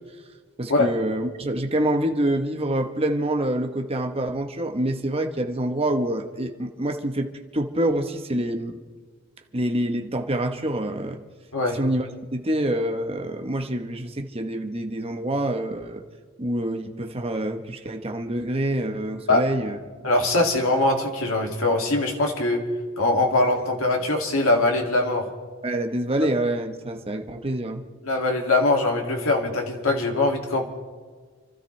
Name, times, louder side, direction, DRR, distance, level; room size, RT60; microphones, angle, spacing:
voice 1, 0.6-7.3 7.5-8.8 9.5-11.2 11.7-12.1 12.3-16.0 16.4-19.8 25.6-27.8, right 1 dB, 25° right, 5 dB, 1.0 m, -26 dB
voice 2, 20.0-22.6 23.0-25.3 28.0-30.7, left 2 dB, 75° left, 1 dB, 2.4 m, -22 dB
28.5 x 13.0 x 3.2 m, 1.5 s
head